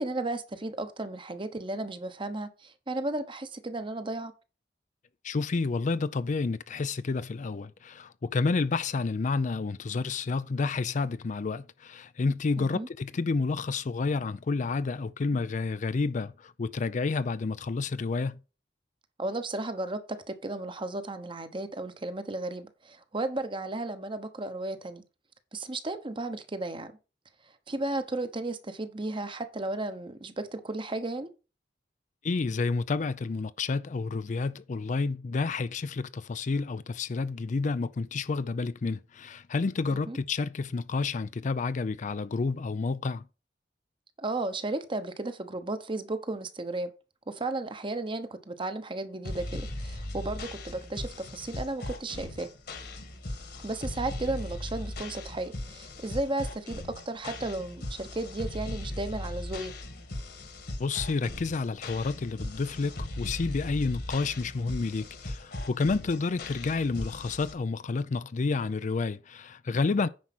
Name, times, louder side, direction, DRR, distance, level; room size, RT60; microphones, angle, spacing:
voice 1, 0.0-4.3 12.6-12.9 19.2-25.0 25.5-27.0 27.7-31.3 39.9-40.2 44.2-46.9 47.3-52.5 53.6-59.7, right 2 dB, 30° right, 1.0 m, -34 dB
voice 2, 5.2-18.4 32.2-43.3 60.8-70.1, left 4 dB, 45° left, 0.4 m, -30 dB
sound 1, 49.2-67.5, left 1 dB, 60° left, 1.8 m, -38 dB
9.6 x 4.8 x 6.0 m
head